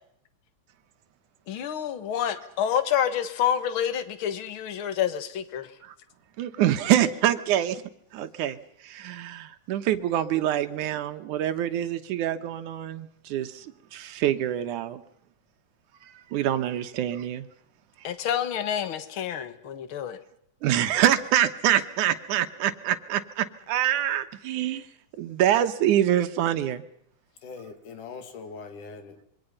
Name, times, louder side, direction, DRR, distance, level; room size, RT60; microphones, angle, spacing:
voice 1, 1.5-5.7 18.0-20.2, left 9 dB, 50° left, 2.0 m, -28 dB
voice 2, 6.4-7.8 8.1-8.6 8.8-15.0 16.3-17.5 20.6-24.9 25.2-26.8, right 11 dB, 80° right, 2.6 m, -25 dB
voice 3, 27.4-29.3, left 5 dB, 80° left, 3.9 m, -41 dB
26.5 x 23.5 x 5.5 m
omnidirectional pair, 3.6 m